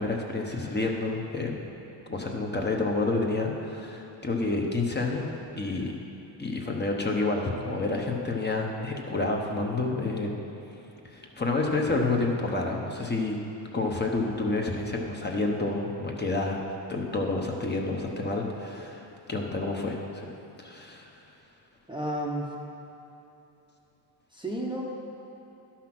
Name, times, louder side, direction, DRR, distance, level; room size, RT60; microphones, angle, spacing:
voice 1, 0.0-1.5 2.1-5.9 6.4-10.4 11.0-13.4 13.7-20.3 20.6-21.1, left 3 dB, 20° left, 0 dB, 1.0 m, -29 dB
voice 2, 21.9-22.5 24.3-24.8, right 1 dB, 10° right, -2 dB, 0.8 m, -31 dB
11.5 x 5.8 x 6.0 m, 3.0 s
cardioid pair, 120°, 48 cm